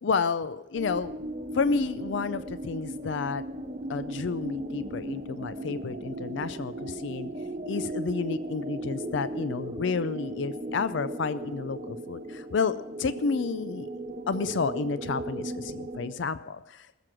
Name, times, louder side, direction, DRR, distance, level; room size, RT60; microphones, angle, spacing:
voice 1, 0.0-1.1 1.5-3.4 3.9-7.3 7.7-13.9 14.3-17.0, left 4 dB, 60° left, 14 dB, 0.4 m, -30 dB
sound 1, 0.7-16.1, right 1 dB, 35° right, 1.0 m, -36 dB
19.5 x 7.6 x 6.1 m, 0.96 s
head